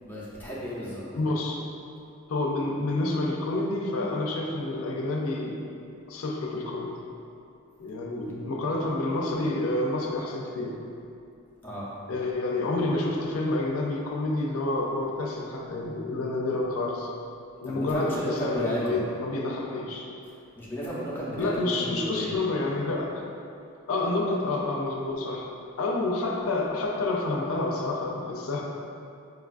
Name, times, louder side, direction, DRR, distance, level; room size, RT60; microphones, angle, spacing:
voice 1, 0.0-1.0 11.6-11.9 17.6-19.0 20.6-22.3, equal, 10° left, -8 dB, 0.5 m, -33 dB
voice 2, 1.1-1.6 2.3-5.6 6.1-7.0 7.8-10.7 12.1-17.1 17.6-20.1 21.4-23.2 23.9-25.5 25.8-28.6, left 2 dB, 90° left, -1 dB, 0.4 m, -28 dB
4.4 x 2.3 x 2.4 m, 2.6 s
head